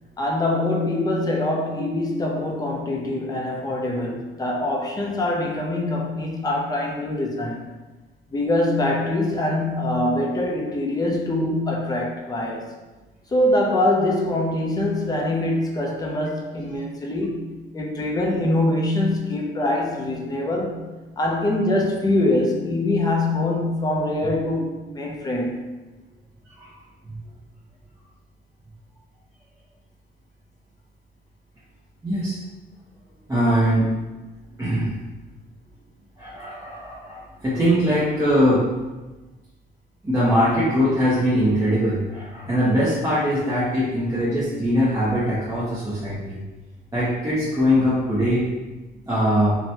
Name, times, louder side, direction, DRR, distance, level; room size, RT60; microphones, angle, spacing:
voice 1, 0.2-7.6 8.3-12.7 13.3-20.8 21.2-25.7, left 1 dB, 20° left, 0 dB, 0.5 m, -24 dB
voice 2, 32.0-32.4 33.3-33.9 34.6-34.9 36.2-38.7 40.0-46.4 46.9-48.5 49.1-49.6, equal, 15° right, -10 dB, 0.7 m, -21 dB
2.9 x 2.2 x 2.8 m, 1.2 s
cardioid pair, 90°, 20 cm